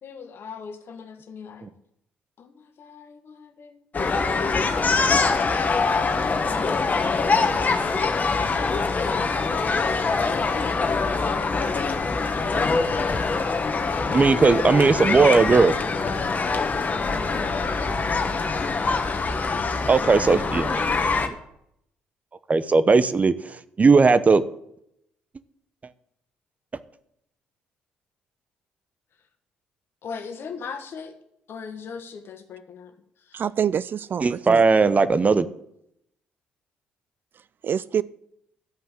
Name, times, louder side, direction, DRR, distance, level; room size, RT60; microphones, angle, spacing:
voice 1, 0.0-1.7 2.4-3.9 17.1-17.5 30.0-31.2 31.5-32.9 33.2-33.4, left 5 dB, 60° left, 8 dB, 1.5 m, -40 dB
sound 1, 3.9-21.3, left 4 dB, 40° left, 1.4 m, -24 dB
voice 2, 14.1-15.8 19.9-20.8 21.2-21.3 22.5-24.4 34.2-35.5, right 4 dB, 35° right, 14 dB, 0.8 m, -18 dB
voice 3, 33.3-34.6 37.6-38.0, right 8 dB, 50° right, 19 dB, 0.4 m, -26 dB
12.0 x 5.7 x 7.5 m, 0.76 s
hypercardioid pair, 55°, 4 cm